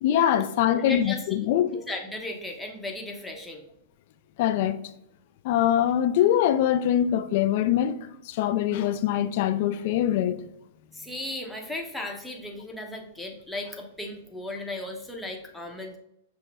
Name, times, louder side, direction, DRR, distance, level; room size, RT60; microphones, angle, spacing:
voice 1, 0.0-1.8 4.4-4.8 5.4-10.4, left 11 dB, 55° left, 0.3 m, -23 dB
voice 2, 0.7-1.4 1.7-3.6 10.9-16.0, left 2 dB, 5° left, 0.8 m, -36 dB
5.7 x 2.1 x 3.4 m
hypercardioid pair, 115°, 0 cm